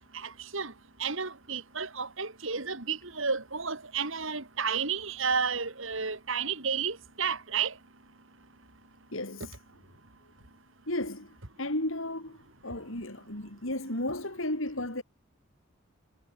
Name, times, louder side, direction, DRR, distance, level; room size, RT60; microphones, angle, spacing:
voice 1, 0.1-0.7 1.0-7.7, right 5 dB, 60° right, 2.5 m, -32 dB
voice 2, 9.1-9.5 10.9-12.4 12.6-15.0, left 1 dB, 65° left, 4.7 m, -34 dB
head